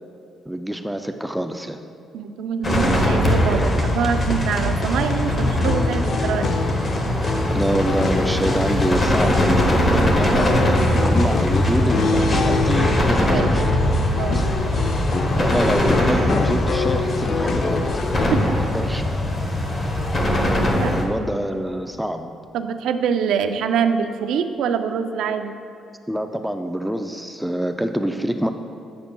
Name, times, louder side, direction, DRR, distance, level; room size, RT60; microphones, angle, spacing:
voice 1, 0.5-1.8 7.5-13.7 14.3-14.5 15.4-17.8 18.6-19.0 20.8-22.3 26.1-28.5, right 1 dB, 5° right, 7 dB, 0.3 m, -26 dB
voice 2, 2.1-6.6 13.3-13.6 14.2-14.5 18.3-18.6 20.8-20.9 22.5-25.6, right 7 dB, 85° right, 9 dB, 0.4 m, -24 dB
sound 1, 2.6-21.0, left 1 dB, 35° left, 0.9 m, -21 dB
sound 2, 5.6-18.3, left 3 dB, 55° left, 0.5 m, -26 dB
8.6 x 6.8 x 2.2 m, 2.6 s
cardioid pair, 90°, 0 cm